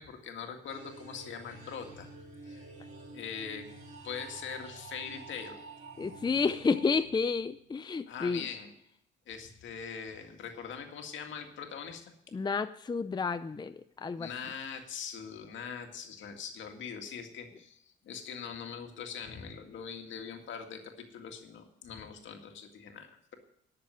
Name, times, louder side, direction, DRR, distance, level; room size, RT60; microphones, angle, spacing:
voice 1, 0.0-2.1 2.4-2.7 3.1-3.7 4.0-5.6 8.1-8.7 9.3-12.1 14.2-23.3, left 7 dB, 70° left, 4 dB, 2.0 m, -42 dB
sound 1, 0.6-7.6, right 3 dB, 40° right, 4.9 m, -49 dB
voice 2, 6.0-8.4 12.3-14.3, left 4 dB, 20° left, 11 dB, 0.5 m, -30 dB
11.0 x 6.8 x 9.1 m, 0.74 s
cardioid pair, 90°, 20 cm